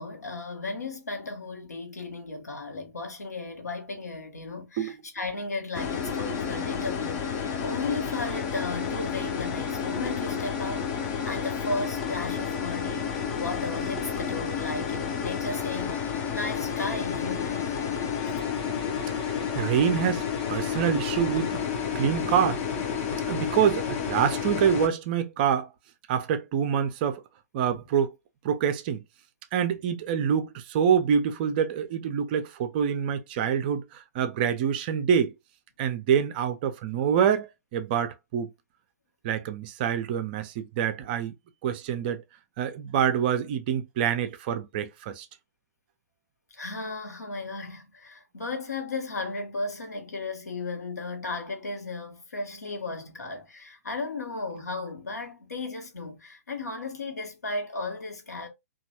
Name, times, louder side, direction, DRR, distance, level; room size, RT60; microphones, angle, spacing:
voice 1, 0.0-17.8 18.3-18.5 18.7-18.9 27.7-27.8 46.5-58.5, left 3 dB, 75° left, 1.0 m, -35 dB
sound 1, 5.7-24.9, left 7 dB, 30° left, 0.6 m, -30 dB
voice 2, 19.3-20.2 20.5-21.6 21.9-22.6 23.2-25.7 26.1-27.2 27.5-28.1 28.4-29.0 29.5-35.3 35.8-38.5 39.2-41.3 41.6-42.2 42.6-45.3, right 8 dB, 35° right, 0.4 m, -26 dB
2.9 x 2.3 x 2.8 m
figure-of-eight pair, 120°, 9 cm